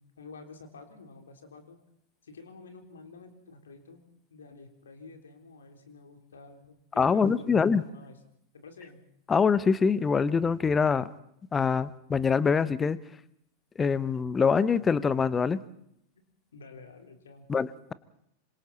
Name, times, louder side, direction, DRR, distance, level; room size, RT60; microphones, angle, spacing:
voice 1, 0.0-1.8 2.2-4.0 4.3-8.2 8.5-9.0 16.2-16.3 16.5-17.5, left 3 dB, 70° left, 5 dB, 3.7 m, -49 dB
voice 2, 7.0-7.8 9.3-11.1 11.5-13.0 13.8-15.6 17.5-17.9, left 5 dB, 15° left, 18 dB, 1.0 m, -24 dB
27.0 x 25.5 x 4.2 m, 0.74 s
figure-of-eight pair, 90°, 0 cm